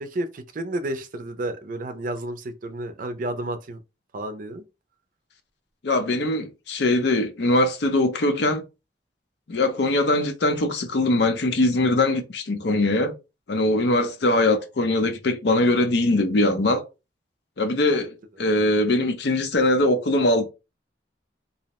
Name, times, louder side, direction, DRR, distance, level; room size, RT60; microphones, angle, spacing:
voice 1, 0.0-3.8 4.1-4.6, right 1 dB, 50° right, 0.4 m, -31 dB
voice 2, 5.8-8.6 9.5-13.1 13.5-16.8 17.6-20.5, left 2 dB, 70° left, 0.5 m, -21 dB
2.7 x 2.0 x 2.9 m
head